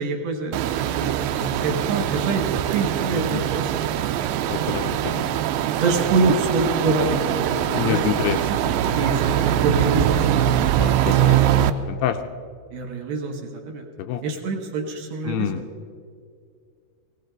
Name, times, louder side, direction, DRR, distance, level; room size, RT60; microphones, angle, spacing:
voice 1, 0.0-4.2 5.8-8.0 8.5-8.6 8.9-10.3 12.7-13.9 14.2-15.6, right 3 dB, 70° right, 3 dB, 2.6 m, -26 dB
sound 1, 0.5-11.7, right 11 dB, 85° right, 2.2 m, -22 dB
voice 2, 4.5-5.4 7.7-8.4 8.9-9.0 10.8-11.4 11.9-12.2 14.0-14.2 15.2-15.6, left 11 dB, 80° left, 7 dB, 2.5 m, -27 dB
17.5 x 17.0 x 3.9 m, 2.2 s
omnidirectional pair, 5.0 m